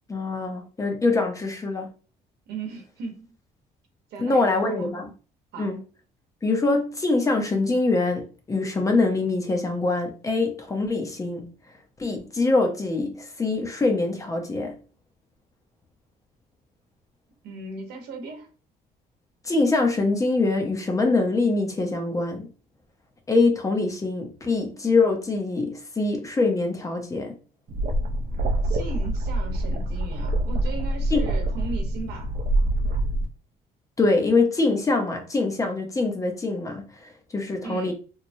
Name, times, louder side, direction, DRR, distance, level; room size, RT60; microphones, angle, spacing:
voice 1, 0.1-1.9 4.2-5.1 5.6-5.8 6.4-11.4 12.0-14.8 19.4-22.5 23.3-27.3 31.1-31.2 34.0-37.9, left 3 dB, 20° left, 0.5 m, -24 dB
voice 2, 2.5-3.3 4.1-4.9 5.5-5.7 17.4-18.5 28.6-32.3 37.6-37.9, right 3 dB, 75° right, 0.9 m, -37 dB
sound 1, 27.7-33.3, right 1 dB, 50° right, 0.5 m, -25 dB
3.0 x 2.1 x 2.6 m
cardioid pair, 110°, 17 cm